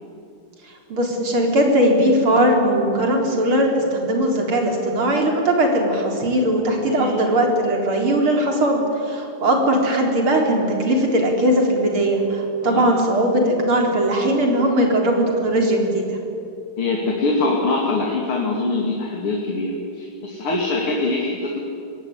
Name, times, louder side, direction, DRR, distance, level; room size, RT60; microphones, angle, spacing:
voice 1, 0.9-16.2, right 1 dB, 75° right, 1 dB, 4.7 m, -19 dB
voice 2, 6.9-7.2 12.6-12.9 16.8-21.6, left 2 dB, 80° left, -1 dB, 3.6 m, -23 dB
24.5 x 18.5 x 9.8 m, 2.7 s
omnidirectional pair, 2.4 m